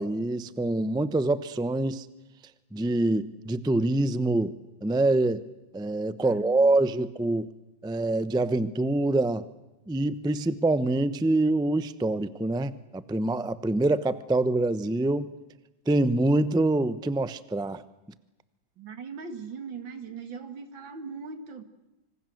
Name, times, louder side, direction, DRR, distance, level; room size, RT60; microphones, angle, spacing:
voice 1, 0.0-2.1 2.7-4.5 4.8-5.4 5.7-7.5 7.8-9.4 9.9-15.3 15.9-17.8, right 2 dB, 5° right, 0.4 m, -25 dB
voice 2, 6.2-6.9 18.8-21.6, right 5 dB, 85° right, 2.8 m, -40 dB
27.0 x 25.5 x 7.9 m
omnidirectional pair, 2.0 m